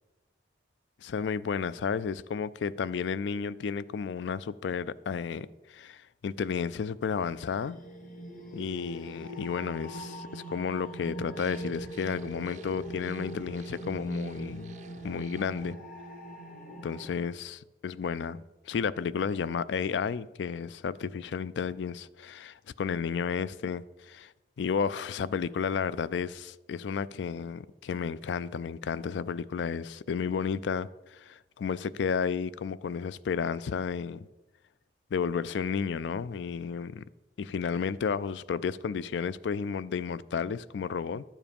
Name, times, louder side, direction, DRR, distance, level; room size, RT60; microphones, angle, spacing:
voice 1, 1.0-7.8 8.5-14.8 15.0-15.8 16.8-24.3 24.6-34.3 35.1-37.0 37.4-41.2, left 6 dB, 75° left, 0.4 m, -32 dB
sound 1, 6.9-17.1, right 1 dB, 50° left, 1.3 m, -41 dB
sound 2, 11.4-15.7, right 5 dB, 45° right, 0.4 m, -51 dB
12.0 x 7.3 x 5.2 m
head